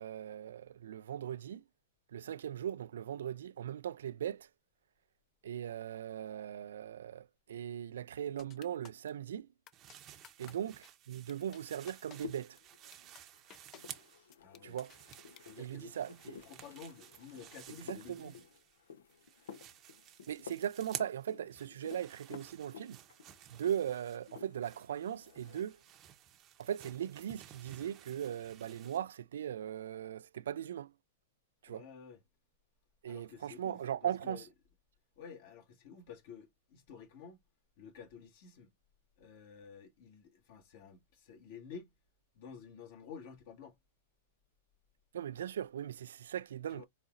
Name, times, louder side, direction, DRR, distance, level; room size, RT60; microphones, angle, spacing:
voice 1, 0.0-1.6 2.1-4.5 5.4-9.5 10.4-12.6 14.6-14.9 15.6-16.4 17.9-18.3 20.3-23.0 23.5-25.8 26.6-30.9 31.6-31.8 33.0-34.4 45.1-46.8, right 10 dB, 75° right, 0.3 m, -39 dB
sound 1, 8.4-9.1 9.7-10.0 10.2-10.5 10.8-10.9 11.3-11.6 11.9-12.2 12.6-12.7 12.9-13.2 13.5-13.8 14.3-15.5, left 10 dB, 30° left, 0.4 m, -55 dB
sound 2, 9.7-14.3 14.6-18.8 19.1-29.0, right 11 dB, 30° right, 0.7 m, -53 dB
sound 3, 11.8-24.9 25.1-25.8, left 7 dB, 80° left, 0.7 m, -53 dB
voice 2, 14.4-14.8 15.4-18.4 31.7-32.2 33.1-34.4 35.1-37.4 37.8-38.7 39.2-41.9 42.3-43.7 46.7-46.9, left 6 dB, 55° left, 1.6 m, -52 dB
4.0 x 3.9 x 2.5 m
hypercardioid pair, 125°, 0 cm